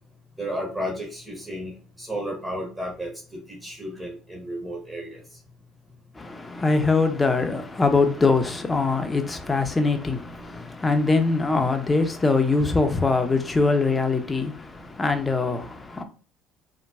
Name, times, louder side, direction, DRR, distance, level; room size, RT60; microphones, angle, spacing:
voice 1, 0.4-5.2, equal, 20° right, 1.2 m, -33 dB
voice 2, 6.1-16.0, left 3 dB, 20° left, 0.6 m, -23 dB
4.0 x 2.2 x 2.3 m
supercardioid pair, 75°, 0 cm